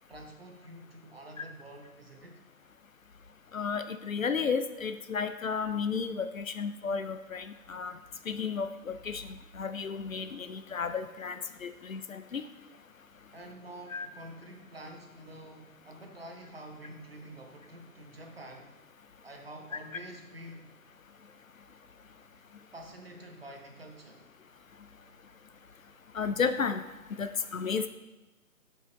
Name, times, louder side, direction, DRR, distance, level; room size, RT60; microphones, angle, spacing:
voice 1, 0.1-2.4 13.3-18.7 19.2-20.7 22.7-24.3, right 1 dB, 40° right, 3 dB, 0.9 m, -48 dB
voice 2, 3.5-7.9 8.3-9.3 9.5-12.4 13.9-14.1 26.1-26.8 27.1-27.9, left 5 dB, 60° left, 10 dB, 0.5 m, -33 dB
6.9 x 5.4 x 3.9 m, 1.2 s
figure-of-eight pair, 170°, 45 cm